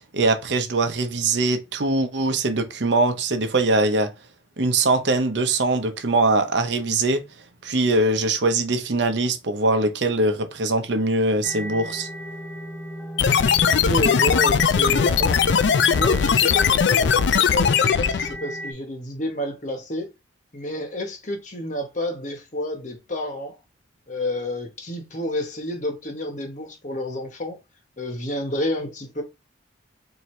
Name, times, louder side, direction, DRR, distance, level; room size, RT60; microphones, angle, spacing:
voice 1, 0.1-4.1 4.6-7.2 7.6-12.1, right 2 dB, 70° right, 0.7 m, -22 dB
sound 1, 11.4-18.7, right 1 dB, 5° left, 0.6 m, -35 dB
sound 2, 13.2-18.4, left 7 dB, 70° left, 0.4 m, -19 dB
voice 2, 13.6-15.4 15.9-20.1 20.5-23.6 24.1-27.6 28.0-29.2, left 1 dB, 40° left, 1.1 m, -29 dB
4.5 x 2.8 x 3.2 m
head